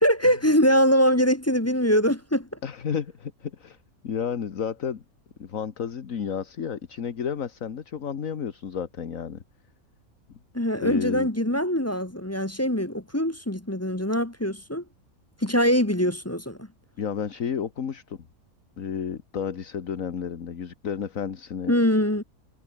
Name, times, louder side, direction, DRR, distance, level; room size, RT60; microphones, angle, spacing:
voice 1, 0.0-2.5 10.5-14.8 15.4-16.7 21.7-22.2, equal, 10° left, 1.1 m, -23 dB
voice 2, 2.6-3.8 4.0-5.0 5.4-9.4 10.3-10.4 10.8-11.3 17.0-18.3 18.8-21.7, left 7 dB, 65° left, 1.8 m, -31 dB
omnidirectional pair, 1.6 m